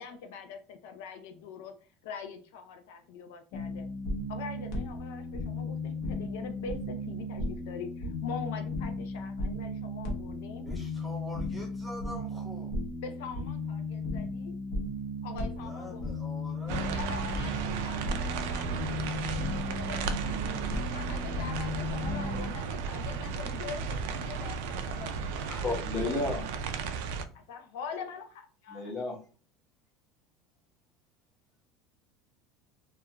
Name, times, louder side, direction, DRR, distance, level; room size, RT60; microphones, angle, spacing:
voice 1, 0.0-3.9 4.3-10.7 13.0-14.6 15.2-16.0 16.9-19.2 19.7-25.5 26.0-26.2 27.3-29.0, left 5 dB, 85° left, 0.4 m, -43 dB
sound 1, 3.5-22.5, left 2 dB, 60° left, 0.9 m, -35 dB
voice 2, 10.6-12.8 15.6-17.0, equal, ahead, 0.4 m, -44 dB
sound 2, 16.7-27.2, right 5 dB, 80° right, 0.3 m, -34 dB
voice 3, 25.4-26.4 28.7-29.2, left 2 dB, 25° left, 0.9 m, -32 dB
2.3 x 2.3 x 2.9 m
cardioid pair, 160°, 0 cm